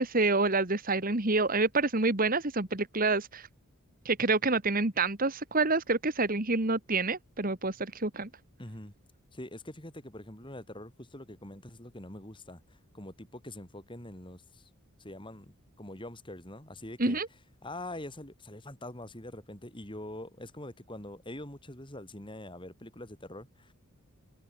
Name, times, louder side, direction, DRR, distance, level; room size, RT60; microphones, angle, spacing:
voice 1, 0.0-3.5 4.1-8.3 17.0-17.3, right 3 dB, 40° right, 1.9 m, -27 dB
voice 2, 8.6-8.9 9.3-14.7 15.0-17.2 17.6-23.7, left 1 dB, 20° left, 3.7 m, -44 dB
head